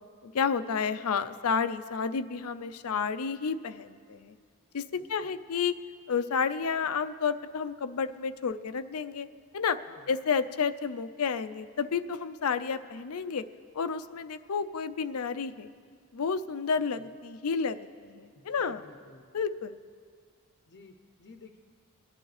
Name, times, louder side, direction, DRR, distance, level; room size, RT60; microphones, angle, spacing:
voice 1, 0.2-4.3 4.7-5.8 6.1-9.3 9.5-9.8 10.1-13.4 13.7-15.7 16.1-18.8 19.3-19.8, left 6 dB, 90° left, 12 dB, 0.5 m, -31 dB
voice 2, 4.9-5.3 9.9-10.1 17.0-17.1 18.3-19.4 20.7-21.6, left 3 dB, 55° left, 4 dB, 0.7 m, -54 dB
22.5 x 10.5 x 3.3 m, 2.1 s
head